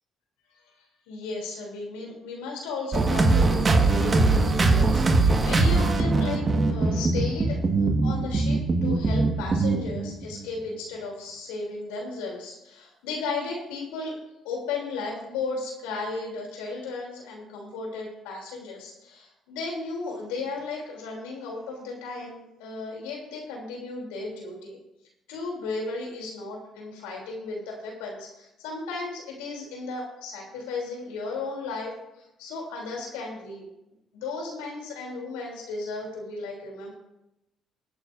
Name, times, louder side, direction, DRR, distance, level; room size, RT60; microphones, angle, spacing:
voice 1, 1.1-7.6 8.0-14.2 14.4-24.8 25.3-33.7 34.1-36.9, left 3 dB, 90° left, -1 dB, 3.2 m, -35 dB
sound 1, 2.9-10.5, right 3 dB, 40° right, 1.6 m, -22 dB
23.0 x 8.8 x 2.6 m, 0.90 s
hypercardioid pair, 55°, 0 cm